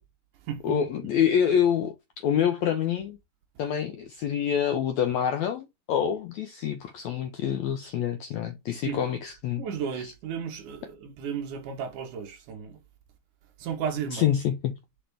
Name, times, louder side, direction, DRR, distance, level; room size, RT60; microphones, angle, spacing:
voice 1, 0.6-3.2 3.6-9.6 14.1-14.7, left 9 dB, 80° left, 1.6 m, -26 dB
voice 2, 9.6-12.8 13.6-14.3, right 7 dB, 70° right, 2.3 m, -34 dB
6.3 x 4.5 x 3.4 m
omnidirectional pair, 4.1 m